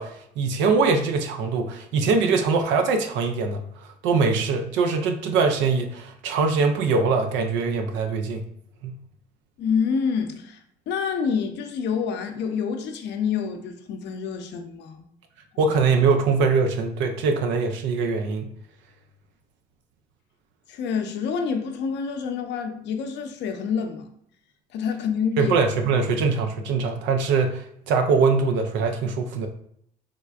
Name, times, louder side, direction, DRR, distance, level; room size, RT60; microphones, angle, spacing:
voice 1, 0.0-8.4 8.8-8.9 15.6-18.5 25.4-29.5, right 4 dB, 80° right, 0.5 m, -22 dB
voice 2, 9.6-10.6 10.9-15.0 15.5-15.7 20.7-24.1 24.7-25.5, left 6 dB, 70° left, 0.6 m, -27 dB
3.5 x 3.2 x 2.3 m
supercardioid pair, 75°, 19 cm